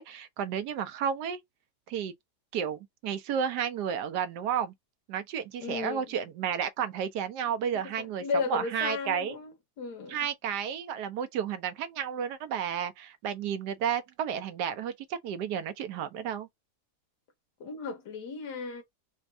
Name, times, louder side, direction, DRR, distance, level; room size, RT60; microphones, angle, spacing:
voice 1, 0.0-1.4 1.9-2.1 2.5-4.7 5.1-9.4 10.1-16.5, right 8 dB, 80° right, 1.3 m, -32 dB
voice 2, 5.6-6.1 7.4-7.5 7.8-10.2 17.6-18.8, left 4 dB, 80° left, 1.7 m, -35 dB
4.3 x 2.3 x 2.6 m
omnidirectional pair, 1.7 m